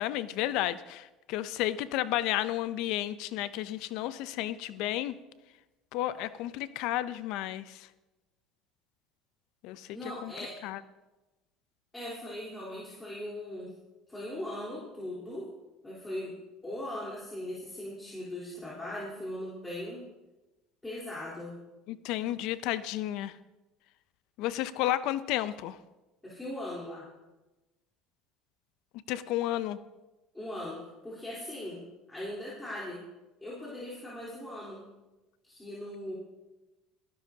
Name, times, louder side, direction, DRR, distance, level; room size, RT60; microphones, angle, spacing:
voice 1, 0.0-5.1 5.9-7.8 9.6-9.9 10.2-10.3 10.6-10.8 21.9-23.3 24.4-25.8 29.1-29.8, left 14 dB, 70° left, 15 dB, 0.5 m, -32 dB
voice 2, 9.9-10.6 11.9-13.7 14.1-15.5 15.8-16.4 16.6-20.0 20.8-21.6 26.2-27.1 30.3-31.8 32.1-33.0 33.4-34.8 35.4-36.1, left 1 dB, 10° left, -7 dB, 3.6 m, -39 dB
21.0 x 11.0 x 2.8 m, 1.1 s
supercardioid pair, 105°, 0 cm